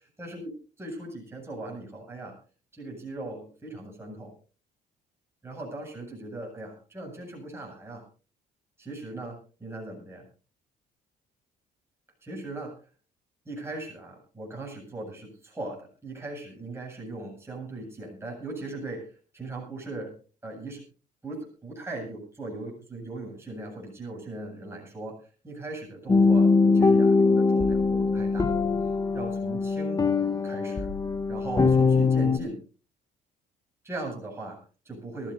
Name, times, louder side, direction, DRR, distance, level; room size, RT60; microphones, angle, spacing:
voice 1, 0.2-0.5 0.8-2.4 2.7-4.3 5.4-8.0 8.8-10.3 12.2-12.8 13.4-20.1 20.4-20.8 21.2-28.5 29.1-30.0 30.4-30.9 31.3-32.6 33.8-35.3, right 2 dB, 15° right, -1 dB, 7.9 m, -39 dB
sound 1, 26.1-32.4, left 4 dB, 20° left, 1.1 m, -22 dB
23.0 x 14.0 x 2.7 m, 0.36 s
cardioid pair, 110°, 17 cm